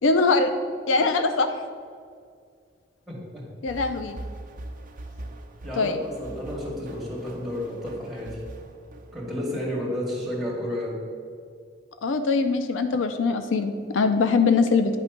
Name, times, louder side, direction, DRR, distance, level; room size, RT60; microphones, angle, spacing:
voice 1, 0.0-0.5 0.9-1.5 3.6-4.2 5.8-6.0 12.0-15.0, left 4 dB, 75° left, 8 dB, 0.4 m, -22 dB
voice 2, 3.1-3.5 5.6-8.4 9.1-11.0, left 1 dB, ahead, -5 dB, 1.9 m, -31 dB
sound 1, 3.7-9.6, right 1 dB, 45° right, 0.7 m, -42 dB
9.2 x 3.5 x 5.8 m, 2.1 s
head